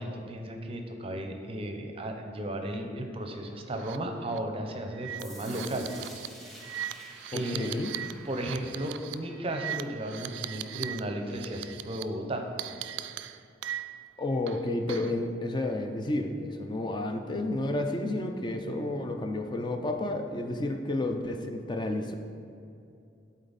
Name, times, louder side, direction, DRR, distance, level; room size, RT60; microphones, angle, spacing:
voice 1, 0.0-5.9 7.3-7.7 8.2-12.5, right 1 dB, 35° right, 4 dB, 0.7 m, -34 dB
sound 1, 3.7-4.0 4.3-4.4 4.9-11.0 11.3-12.0 12.6-14.1 14.5-15.2, right 11 dB, 85° right, 0.3 m, -39 dB
sound 2, 5.2-11.2, equal, ahead, 1.7 m, -51 dB
voice 2, 7.3-7.9 14.2-22.1, left 2 dB, 25° left, 5 dB, 0.4 m, -31 dB
11.5 x 4.2 x 4.0 m, 2.5 s
head